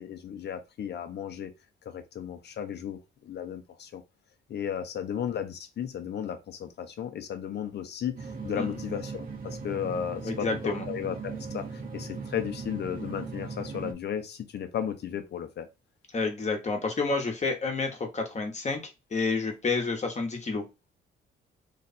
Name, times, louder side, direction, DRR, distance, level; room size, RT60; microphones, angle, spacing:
voice 1, 0.0-1.5 1.8-4.0 4.5-15.7, left 9 dB, 60° left, 0.8 m, -35 dB
sound 1, 8.2-13.9, right 4 dB, 45° right, 1.1 m, -38 dB
voice 2, 10.2-10.9 16.1-18.8 19.1-20.6, left 4 dB, 35° left, 1.3 m, -29 dB
3.2 x 2.5 x 4.2 m
cardioid pair, 90°, 20 cm